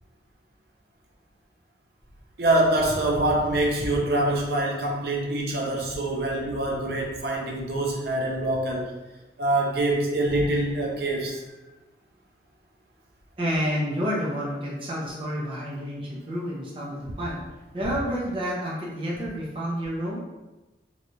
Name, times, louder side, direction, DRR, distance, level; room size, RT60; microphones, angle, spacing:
voice 1, 2.4-8.9 9.4-11.4, right 1 dB, 60° right, -1 dB, 0.5 m, -25 dB
voice 2, 13.4-17.4 17.7-20.2, equal, 30° right, -6 dB, 0.7 m, -29 dB
3.1 x 2.4 x 2.7 m, 1.1 s
head